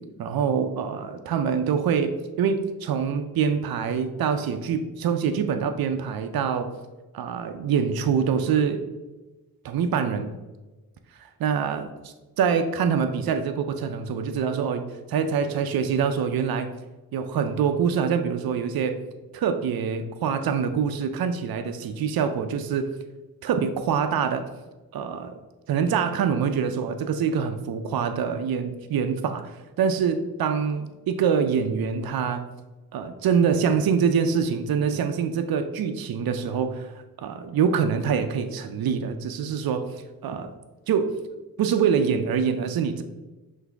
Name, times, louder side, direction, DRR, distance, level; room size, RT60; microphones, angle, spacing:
voice 1, 0.2-2.1 2.4-6.7 7.1-8.8 9.6-10.3 11.2-14.8 15.1-16.7 17.1-19.0 19.3-22.9 23.4-24.4 24.9-25.3 25.7-32.4 32.9-36.9 37.2-39.9 40.2-40.5 40.9-41.2 41.6-43.0, right 6 dB, 75° right, 8 dB, 0.5 m, -25 dB
5.9 x 2.7 x 3.4 m, 1.2 s
wide cardioid pair, 100°, 36 cm